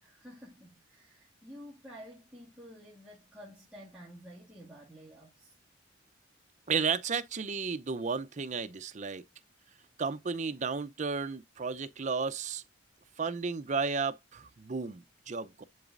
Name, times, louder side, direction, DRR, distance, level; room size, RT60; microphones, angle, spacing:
voice 1, 0.0-5.6, equal, 5° right, 2.0 m, -51 dB
voice 2, 6.7-9.2 10.0-12.6 13.2-15.6, right 5 dB, 40° right, 0.6 m, -33 dB
10.5 x 3.9 x 2.5 m
head